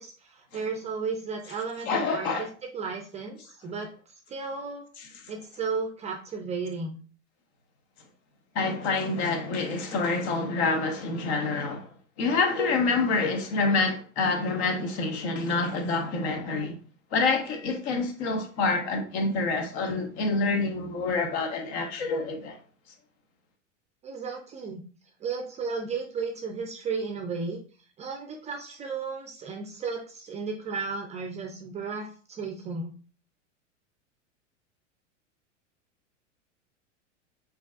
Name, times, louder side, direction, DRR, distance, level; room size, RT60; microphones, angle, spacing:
voice 1, 0.0-2.5 2.7-4.8 5.3-7.0 24.0-24.8 25.2-27.6 28.0-32.9, right 4 dB, 20° right, 0.4 m, -34 dB
voice 2, 1.9-2.5 5.0-5.1 8.5-16.8 17.1-22.6, left 3 dB, 60° left, 0.9 m, -27 dB
4.3 x 2.7 x 2.4 m
hypercardioid pair, 105°, 37 cm